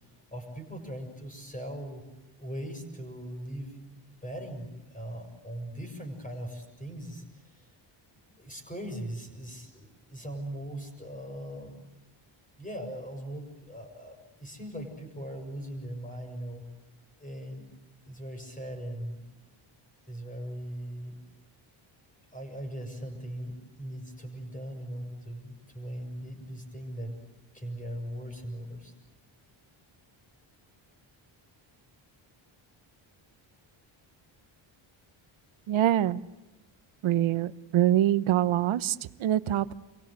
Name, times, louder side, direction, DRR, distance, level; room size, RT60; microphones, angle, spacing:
voice 1, 0.3-2.0 2.4-3.8 4.2-7.7 8.3-11.7 12.6-16.6 17.2-17.7 18.0-19.2 20.1-21.2 22.3-27.1 27.5-28.9, right 1 dB, 15° left, 4 dB, 6.6 m, -39 dB
voice 2, 35.7-36.2 37.0-39.7, right 12 dB, 75° right, 15 dB, 1.0 m, -25 dB
29.5 x 23.5 x 8.1 m, 1.0 s
wide cardioid pair, 175°, 49 cm